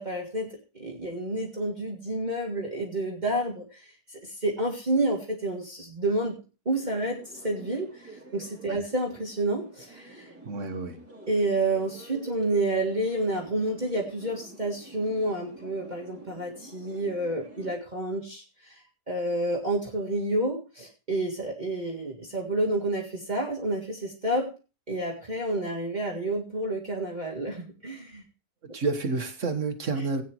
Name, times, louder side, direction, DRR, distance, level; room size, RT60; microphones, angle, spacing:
voice 1, 0.0-6.4 6.7-10.3 11.3-24.5 24.9-28.2, right 1 dB, 30° right, -2 dB, 2.1 m, -29 dB
sound 1, 6.7-17.8, right 2 dB, 10° right, 3.0 m, -48 dB
voice 2, 10.5-11.0 28.7-30.2, right 3 dB, 50° right, 6 dB, 1.7 m, -29 dB
17.5 x 9.4 x 3.1 m, 0.33 s
omnidirectional pair, 1.7 m